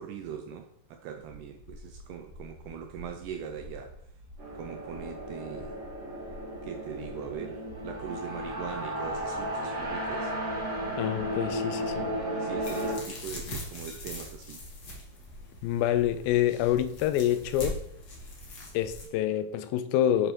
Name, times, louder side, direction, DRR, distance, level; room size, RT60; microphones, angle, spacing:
voice 1, 0.0-3.9 4.6-5.8 6.6-10.3 12.4-14.6, right 8 dB, 80° right, 1.9 m, -41 dB
sound 1, 1.2-19.1, left 1 dB, 25° left, 0.5 m, -50 dB
sound 2, 4.4-13.0, equal, 35° right, 1.1 m, -34 dB
voice 2, 11.0-12.1 15.6-17.8 18.7-20.3, left 11 dB, 90° left, 2.4 m, -27 dB
sound 3, 12.6-19.0, left 1 dB, 65° left, 0.9 m, -42 dB
8.8 x 5.2 x 3.1 m
omnidirectional pair, 4.1 m